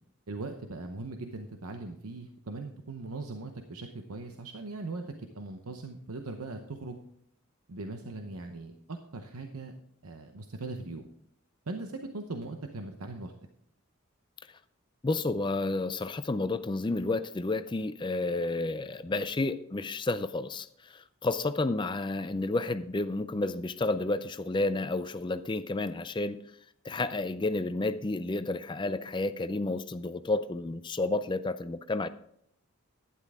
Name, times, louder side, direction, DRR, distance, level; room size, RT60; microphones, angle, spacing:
voice 1, 0.3-5.0 5.3-7.0 7.7-9.7 10.0-11.1 11.7-13.3, right 3 dB, 85° right, 5 dB, 0.8 m, -40 dB
voice 2, 15.0-26.4 26.8-32.1, left 2 dB, 20° left, 12 dB, 0.4 m, -31 dB
11.5 x 10.0 x 3.6 m, 0.70 s
head